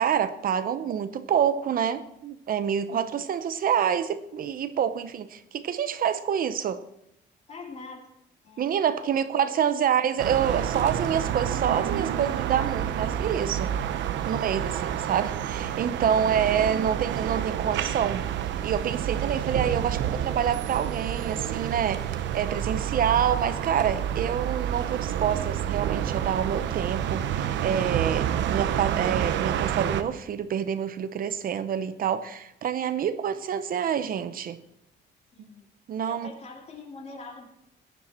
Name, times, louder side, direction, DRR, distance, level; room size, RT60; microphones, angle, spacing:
voice 1, 0.0-6.8 8.6-13.7 14.3-18.2 18.6-34.6 35.4-35.5 35.9-36.3, right 8 dB, 50° right, 11 dB, 0.7 m, -27 dB
voice 2, 2.9-3.2 7.5-8.1 8.4-9.6 35.3-35.7 36.0-37.5, left 3 dB, 35° left, 1 dB, 2.8 m, -44 dB
sound 1, 10.2-30.0, right 10 dB, 85° right, 0.9 m, -29 dB
17.5 x 10.5 x 4.3 m, 0.83 s
cardioid pair, 140°, 18 cm